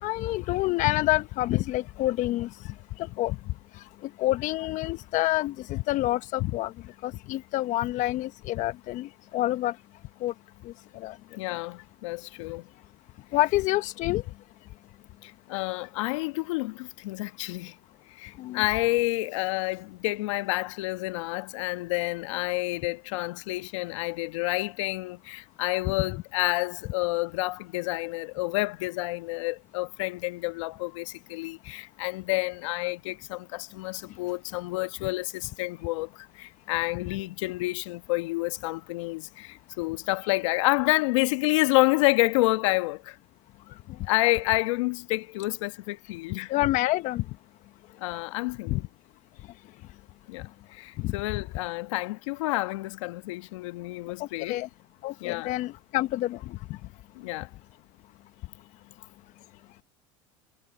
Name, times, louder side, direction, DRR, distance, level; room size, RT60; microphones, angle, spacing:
voice 1, 0.0-3.4 4.2-6.7 7.0-9.7 10.2-10.3 10.6-11.2 13.3-14.2 18.4-18.6 25.8-25.9 46.5-47.2 48.7-48.8 51.0-51.1 54.2-54.7 55.0-56.6, left 17 dB, 50° left, 1.0 m, -27 dB
voice 2, 11.4-12.7 15.2-17.8 18.2-43.2 44.0-46.5 48.0-48.8 50.3-54.6 55.2-55.5 57.1-57.5, left 21 dB, 75° left, 1.5 m, -29 dB
hypercardioid pair, 100°, 16 cm